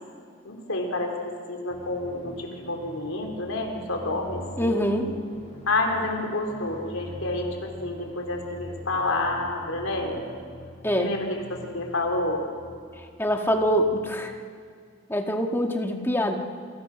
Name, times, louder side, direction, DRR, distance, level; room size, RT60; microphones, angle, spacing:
voice 1, 0.4-1.1 1.5-5.0 5.7-10.2 11.0-12.4, left 2 dB, 80° left, 2 dB, 4.1 m, -29 dB
sound 1, 1.7-14.1, left 1 dB, 30° left, 6.4 m, -44 dB
voice 2, 4.6-5.1 10.8-11.1 13.2-14.3 15.1-16.4, equal, 10° left, 2 dB, 1.8 m, -24 dB
28.0 x 24.5 x 6.2 m, 2.3 s
head